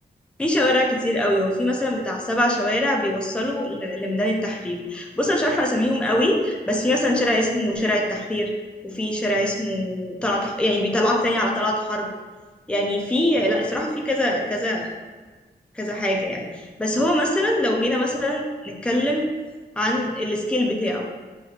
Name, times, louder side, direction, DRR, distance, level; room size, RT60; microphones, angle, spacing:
voice 1, 0.4-8.5 8.8-12.1 12.7-14.9 15.7-19.3 19.8-21.1, left 1 dB, 5° left, 0 dB, 0.5 m, -23 dB
7.4 x 3.0 x 2.4 m, 1.3 s
wide cardioid pair, 150°, 18 cm